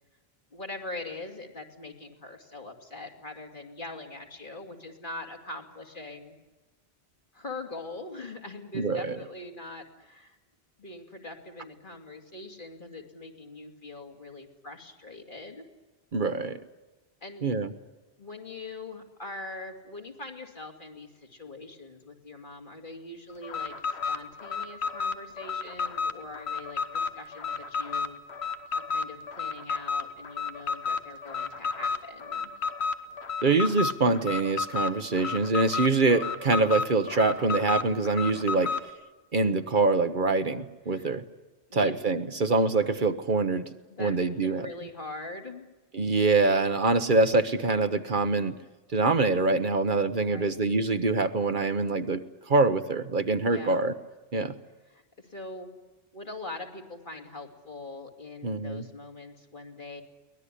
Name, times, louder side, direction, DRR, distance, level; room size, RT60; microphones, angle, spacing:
voice 1, 0.5-6.4 7.3-10.4 10.8-15.6 17.2-17.5 18.2-28.5 28.9-32.5 40.9-41.1 41.7-41.9 42.3-42.5 43.9-45.6 50.2-50.5 53.5-53.8 54.8-55.7 56.1-60.0, left 2 dB, 50° left, 3 dB, 2.8 m, -42 dB
voice 2, 8.7-9.2 16.1-16.6 17.4-17.7 33.4-38.7 39.3-41.2 41.7-43.6 44.0-44.7 45.9-48.6 48.9-53.9 54.3-54.5 58.4-58.8, right 3 dB, 55° right, 9 dB, 1.2 m, -25 dB
Alarm, 23.4-38.9, left 5 dB, 90° left, 1.6 m, -32 dB
23.0 x 19.0 x 10.0 m, 1.2 s
omnidirectional pair, 1.1 m